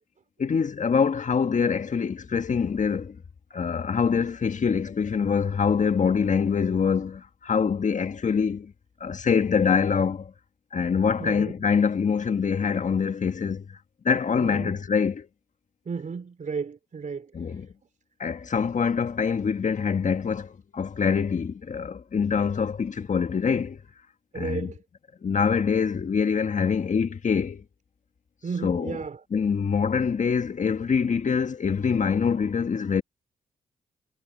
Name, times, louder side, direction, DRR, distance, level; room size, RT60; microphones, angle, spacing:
voice 1, 0.4-3.2 3.5-8.7 9.0-10.3 10.7-13.8 14.0-15.3 17.3-17.7 18.2-23.8 24.3-24.7 25.2-27.6 28.6-29.0 29.3-33.0, left 6 dB, 50° left, 1.5 m, -25 dB
voice 2, 11.2-11.7 14.3-14.8 15.9-17.7 24.3-24.8 28.4-29.2, right 5 dB, 55° right, 3.7 m, -34 dB
hypercardioid pair, 40°, 16 cm